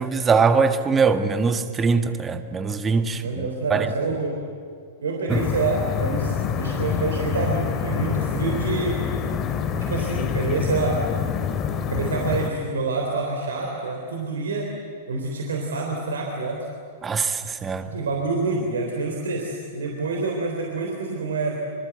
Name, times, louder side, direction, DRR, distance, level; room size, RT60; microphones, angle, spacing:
voice 1, 0.0-3.9 5.3-5.4 17.0-17.9, right 5 dB, 20° right, 1.6 m, -22 dB
voice 2, 3.1-4.4 5.0-9.0 9.4-9.5 9.8-11.0 11.8-14.7 15.1-16.7 17.9-21.6, right 3 dB, 70° right, 3.6 m, -27 dB
sound 1, 5.3-12.5, left 7 dB, 30° left, 2.4 m, -26 dB
26.0 x 25.0 x 8.1 m
figure-of-eight pair, 95°, 0 cm